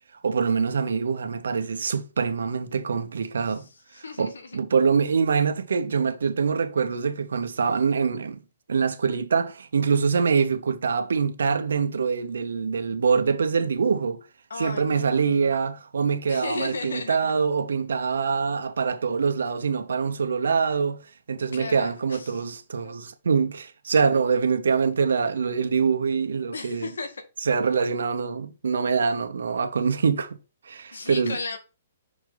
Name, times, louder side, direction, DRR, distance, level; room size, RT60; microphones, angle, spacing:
voice 1, 0.2-3.7 4.2-8.4 8.7-14.2 14.6-21.0 21.3-26.9 27.5-30.4 30.7-31.4, right 5 dB, 80° right, 1.1 m, -24 dB
voice 2, 3.5-4.6 14.5-15.6 16.3-17.3 21.5-22.4 22.8-23.0 26.5-27.2 30.9-31.6, left 3 dB, 85° left, 1.9 m, -35 dB
6.2 x 4.8 x 4.0 m
hypercardioid pair, 140°, 0 cm